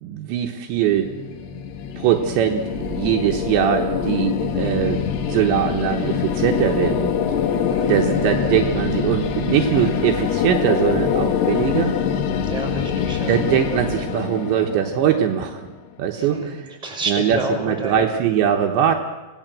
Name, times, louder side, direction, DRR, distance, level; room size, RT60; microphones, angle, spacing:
voice 1, 0.0-1.1 2.0-7.1 7.9-11.9 13.3-15.6 16.0-16.6 17.1-19.0, right 9 dB, 75° right, 3 dB, 3.3 m, -21 dB
sound 1, 0.7-15.8, left 8 dB, 65° left, 3.2 m, -24 dB
sound 2, 2.7-14.1, right 4 dB, 55° right, 1.9 m, -36 dB
voice 2, 12.4-13.3 16.2-18.0, right 3 dB, 10° right, 3 dB, 5.7 m, -29 dB
25.5 x 18.0 x 7.6 m, 1.2 s
omnidirectional pair, 5.4 m